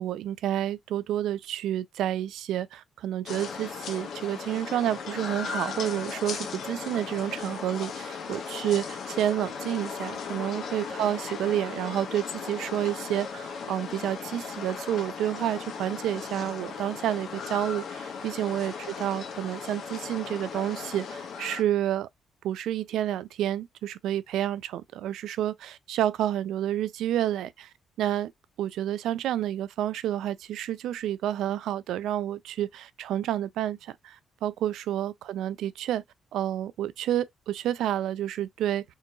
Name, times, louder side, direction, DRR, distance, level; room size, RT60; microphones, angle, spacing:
voice 1, 0.0-22.1 22.4-27.7 28.0-28.3 28.6-36.0 36.3-38.8, right 12 dB, 80° right, 0.3 m, -29 dB
sound 1, 3.3-21.6, left 6 dB, 65° left, 1.0 m, -37 dB
3.8 x 2.8 x 2.3 m
cardioid pair, 90°, 0 cm